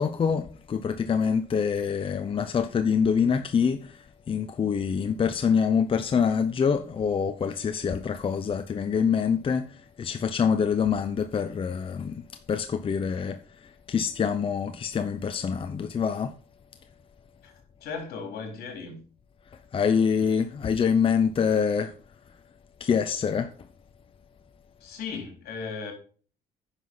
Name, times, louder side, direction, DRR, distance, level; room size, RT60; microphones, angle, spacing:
voice 1, 0.0-12.2 12.5-16.3 19.7-21.9 22.8-23.5, left 6 dB, 30° left, 0.7 m, -25 dB
voice 2, 17.8-19.0 24.8-25.9, left 5 dB, 70° left, 4.1 m, -36 dB
10.0 x 5.9 x 5.6 m
cardioid pair, 110°, 17 cm